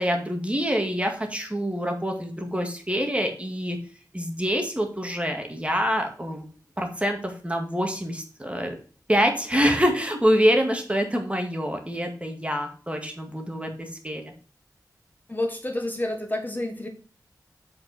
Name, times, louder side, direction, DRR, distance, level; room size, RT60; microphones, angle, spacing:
voice 1, 0.0-3.8 4.1-6.4 6.8-8.7 9.1-14.2, equal, 15° right, 3 dB, 2.0 m, -25 dB
voice 2, 15.3-16.9, left 1 dB, 25° left, 4 dB, 1.5 m, -29 dB
7.6 x 5.0 x 4.2 m, 0.42 s
wide cardioid pair, 55°, 7 cm